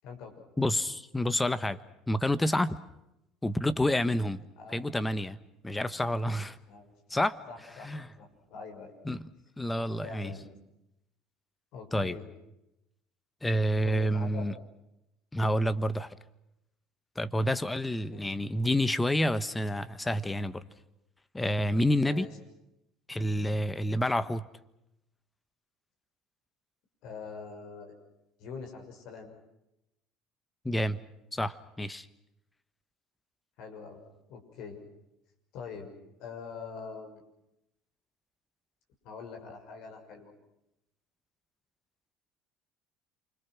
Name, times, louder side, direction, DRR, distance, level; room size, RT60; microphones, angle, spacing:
voice 1, 0.0-0.4 4.6-4.9 6.7-6.9 7.5-8.9 10.0-10.5 11.7-12.3 13.8-14.7 18.1-18.2 22.0-22.4 27.0-27.9 28.4-29.3 33.6-34.0 34.3-34.8 35.5-35.9 36.2-37.2 39.0-40.3, left 5 dB, 65° left, 3 dB, 6.3 m, -44 dB
voice 2, 0.6-1.8 2.1-2.8 3.4-4.4 4.7-5.4 5.6-6.6 7.1-7.4 7.8-8.0 9.0-9.2 9.6-10.3 11.9-12.1 13.4-14.5 15.3-16.1 17.2-20.6 21.3-22.2 23.1-24.4 30.6-31.0 31.3-32.1, left 1 dB, 10° left, 14 dB, 1.4 m, -28 dB
28.0 x 25.5 x 6.1 m, 0.86 s
hypercardioid pair, 70°, 0 cm